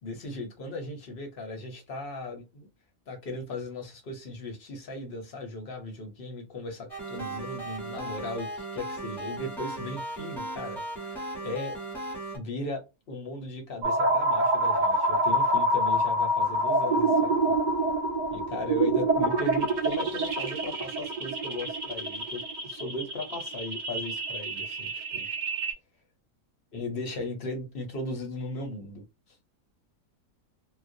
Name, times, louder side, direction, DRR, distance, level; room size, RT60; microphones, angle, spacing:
voice 1, 0.0-2.7 3.1-11.8 12.3-17.5 18.3-25.3 26.7-29.0, left 2 dB, 55° left, 0.7 m, -37 dB
sound 1, 6.9-12.4, right 2 dB, ahead, 0.9 m, -37 dB
sound 2, 13.8-25.7, right 1 dB, 55° right, 0.5 m, -27 dB
2.4 x 2.1 x 2.5 m
omnidirectional pair, 1.5 m